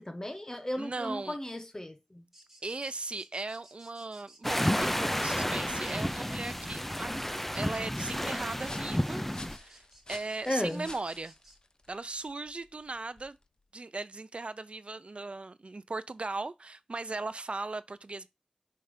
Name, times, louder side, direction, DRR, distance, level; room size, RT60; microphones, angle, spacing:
voice 1, 0.0-2.3 10.4-10.9, left 1 dB, 30° left, 1.3 m, -35 dB
voice 2, 0.8-1.4 2.6-7.1 7.5-9.2 9.5-9.8 10.1-11.3 11.9-13.4 13.7-18.3, right 3 dB, 70° right, 0.5 m, -38 dB
sound 1, 2.3-11.6, right 1 dB, 15° right, 2.0 m, -59 dB
sound 2, 4.4-9.6, equal, 10° left, 0.5 m, -31 dB
sound 3, 8.6-13.6, left 2 dB, 45° left, 0.7 m, -52 dB
5.8 x 3.3 x 5.0 m
wide cardioid pair, 60°, 2 cm